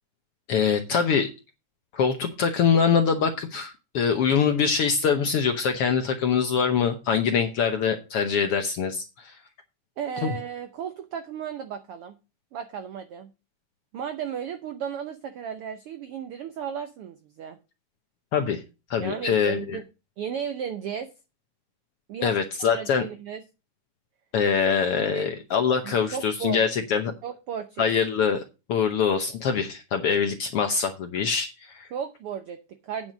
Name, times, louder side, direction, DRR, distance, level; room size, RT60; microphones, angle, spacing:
voice 1, 0.5-1.3 1.9-9.3 10.2-10.3 18.3-18.6 18.9-19.8 22.2-23.1 24.3-27.1 27.8-28.4 28.7-31.9, left 6 dB, 65° left, 6 dB, 1.5 m, -24 dB
voice 2, 10.0-12.2 12.5-13.3 13.9-17.6 19.0-19.8 20.2-21.1 22.1-23.4 25.1-25.3 25.8-26.6 27.2-27.9 31.9-33.1, right 8 dB, 80° right, 9 dB, 1.2 m, -34 dB
8.9 x 6.1 x 6.1 m, 0.29 s
omnidirectional pair, 3.6 m